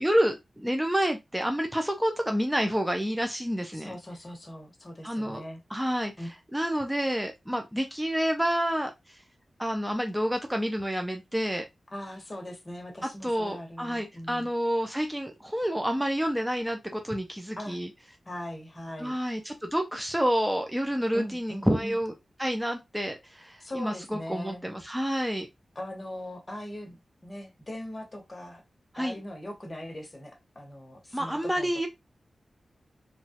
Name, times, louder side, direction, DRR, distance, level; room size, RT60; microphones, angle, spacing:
voice 1, 0.0-4.0 5.0-5.4 5.7-9.2 9.6-11.6 13.0-17.9 19.0-22.1 22.4-25.5 28.9-29.2 31.1-31.9, equal, 5° right, 0.4 m, -29 dB
voice 2, 3.7-5.6 6.2-6.3 11.9-14.5 17.6-17.8 18.3-19.2 21.1-22.0 23.6-24.6 25.7-27.0 27.2-28.6 29.0-31.9, left 1 dB, 20° left, 0.9 m, -40 dB
3.0 x 2.3 x 2.8 m
wide cardioid pair, 150°, 0 cm